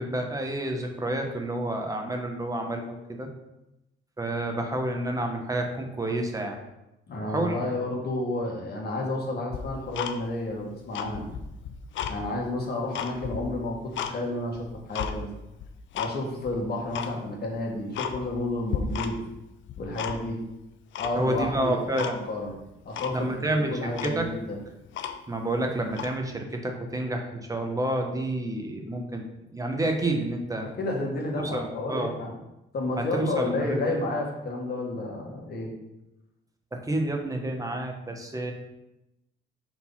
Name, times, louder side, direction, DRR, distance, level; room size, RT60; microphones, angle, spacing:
voice 1, 0.0-3.3 4.2-6.6 7.2-7.6 21.1-22.2 23.1-24.3 25.3-29.2 29.5-30.7 31.4-32.1 33.0-33.8 36.7-38.5, right 1 dB, 15° right, 3 dB, 1.1 m, -29 dB
voice 2, 7.1-11.3 12.1-15.3 15.9-19.2 19.8-20.4 21.0-22.6 22.8-24.6 30.6-32.3 32.7-35.7, left 2 dB, 50° left, -1 dB, 1.7 m, -31 dB
Tick-tock, 9.5-10.5 10.8-12.2 12.6-14.1 14.5-15.1 15.6-16.1 16.4-16.5 16.9-17.1 17.5-17.6 17.9-18.4 18.7-19.4 19.6-20.4 20.9-21.5 22.0-22.2 22.5-22.6 22.9-23.2 23.6-23.7 23.9-25.4 25.9-26.1, left 8 dB, 75° left, 0.6 m, -34 dB
4.8 x 3.9 x 5.6 m, 0.93 s
cardioid pair, 90°, 20 cm